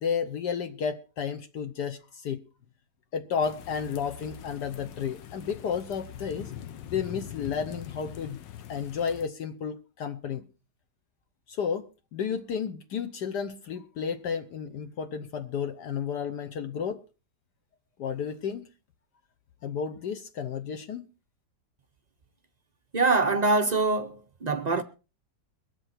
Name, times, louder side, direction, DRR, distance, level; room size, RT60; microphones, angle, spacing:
voice 1, 0.0-2.4 3.1-6.5 6.9-8.4 8.7-10.4 11.5-17.0 18.0-18.7 19.6-21.1, left 7 dB, 70° left, 1.4 m, -32 dB
sound 1, 3.4-9.3, left 10 dB, 85° left, 1.6 m, -43 dB
voice 2, 22.9-24.8, right 3 dB, 55° right, 0.4 m, -24 dB
22.5 x 7.9 x 4.3 m
omnidirectional pair, 1.9 m